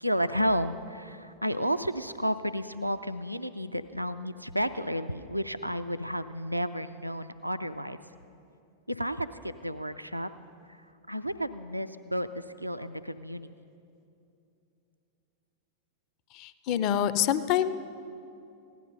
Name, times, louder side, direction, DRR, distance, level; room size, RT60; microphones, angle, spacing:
voice 1, 0.0-8.0 8.9-10.3 11.1-13.5, equal, 90° right, 10 dB, 0.3 m, -32 dB
voice 2, 16.3-17.7, left 10 dB, 40° left, 13 dB, 0.5 m, -26 dB
16.0 x 11.5 x 5.3 m, 2.7 s
figure-of-eight pair, 90°, 0 cm